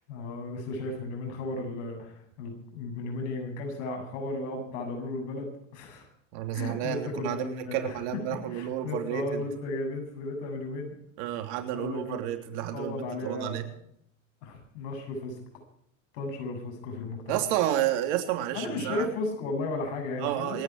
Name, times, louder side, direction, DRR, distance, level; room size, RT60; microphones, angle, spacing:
voice 1, 0.0-6.1 6.5-8.0 8.3-10.9 11.7-12.2 12.7-13.6 14.4-15.4 16.1-17.4 18.5-20.6, left 2 dB, 85° left, 3 dB, 7.7 m, -35 dB
voice 2, 6.3-9.4 11.2-13.7 17.3-19.1 20.2-20.6, right 12 dB, 80° right, 5 dB, 3.3 m, -31 dB
27.5 x 10.0 x 4.7 m, 0.68 s
supercardioid pair, 110°, 36 cm